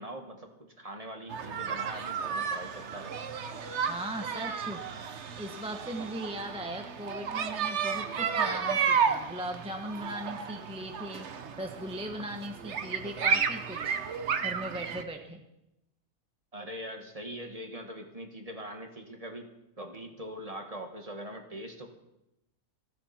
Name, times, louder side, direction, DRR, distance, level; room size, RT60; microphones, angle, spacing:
voice 1, 0.0-3.1 16.5-19.5 19.8-21.9, equal, 25° right, 4 dB, 1.8 m, -42 dB
sound 1, 1.3-15.0, right 6 dB, 50° right, 1.1 m, -32 dB
voice 2, 3.9-4.8 5.4-14.0 14.4-15.4, right 1 dB, 5° right, 3 dB, 0.9 m, -38 dB
28.5 x 9.7 x 4.4 m, 0.89 s
omnidirectional pair, 1.6 m